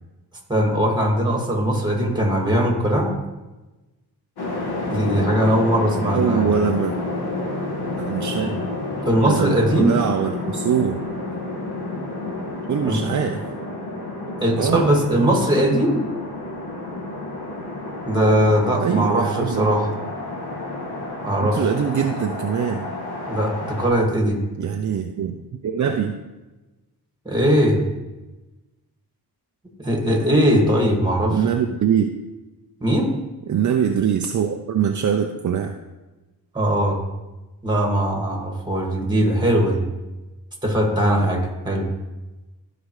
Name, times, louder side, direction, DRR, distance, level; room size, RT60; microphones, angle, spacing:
voice 1, 0.5-3.2 4.9-6.5 8.4-8.5 9.1-9.9 12.8-13.0 14.4-16.0 18.1-19.9 21.2-21.6 23.3-24.4 27.3-27.8 29.8-31.4 32.8-33.1 36.5-37.0 37.6-39.9 40.6-41.9, equal, 10° right, 1 dB, 2.1 m, -20 dB
sound 1, 4.4-23.9, left 2 dB, 70° left, 1.9 m, -30 dB
voice 2, 6.1-6.9 8.0-8.5 9.2-11.0 12.7-13.4 14.6-14.9 18.5-19.8 21.4-22.9 24.6-25.4 25.6-26.2 31.3-32.1 33.5-35.7, right 7 dB, 45° right, 4 dB, 0.6 m, -23 dB
13.5 x 5.0 x 3.2 m, 1.1 s
cardioid pair, 85°, 40 cm